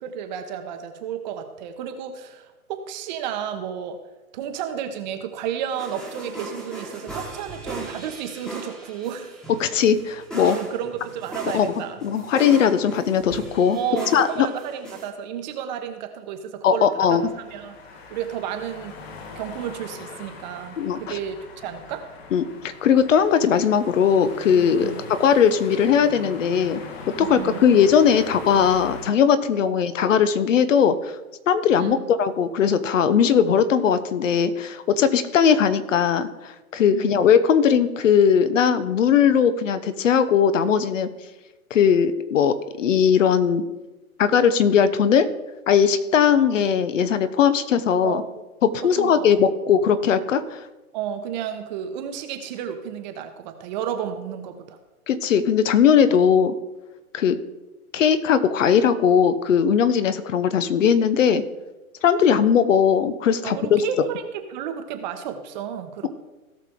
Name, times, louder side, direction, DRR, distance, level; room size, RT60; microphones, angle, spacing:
voice 1, 0.0-4.0 4.3-9.4 10.4-12.0 13.7-17.8 18.1-18.9 19.4-22.0 24.5-25.0 27.2-27.6 29.7-29.8 31.8-32.0 36.9-37.2 48.0-48.2 48.8-49.3 50.9-54.8 56.1-56.2 63.4-66.1, right 8 dB, 30° right, 7 dB, 1.0 m, -32 dB
sound 1, 5.8-15.1, right 2 dB, ahead, 1.4 m, -38 dB
voice 2, 9.6-10.6 11.5-11.7 12.0-13.8 14.1-14.3 16.6-17.2 20.8-21.2 22.3-22.4 22.8-26.8 27.2-31.1 31.5-41.1 41.7-43.6 44.2-45.3 45.7-48.2 48.6-50.6 55.1-56.5 57.1-57.4 57.9-61.4 62.0-63.8, left 7 dB, 60° left, 13 dB, 0.9 m, -19 dB
sound 2, 17.1-29.1, left 4 dB, 45° left, 1.6 m, -41 dB
17.0 x 5.8 x 3.7 m, 1.1 s
hypercardioid pair, 140°, 44 cm